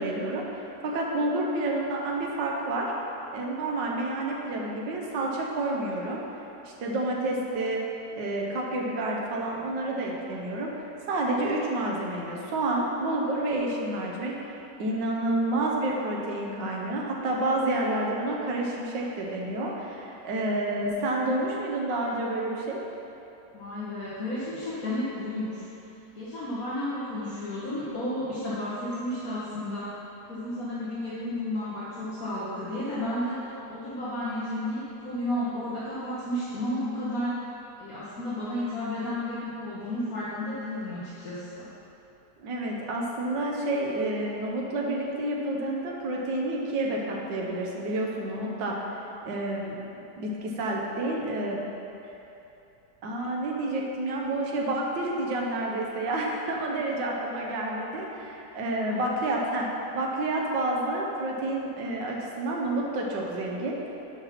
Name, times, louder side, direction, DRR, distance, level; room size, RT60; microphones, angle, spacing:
voice 1, 0.0-2.9 3.3-6.2 6.6-7.8 8.2-14.5 14.8-22.8 42.4-48.8 49.3-49.8 50.2-51.7 53.0-59.7 59.9-63.8, right 2 dB, 85° right, -2 dB, 1.7 m, -29 dB
voice 2, 23.5-25.7 26.1-30.0 30.3-37.5 37.8-41.7 58.9-59.2, left 1 dB, 55° left, -10 dB, 1.6 m, -32 dB
7.0 x 5.6 x 5.8 m, 2.9 s
omnidirectional pair, 1.9 m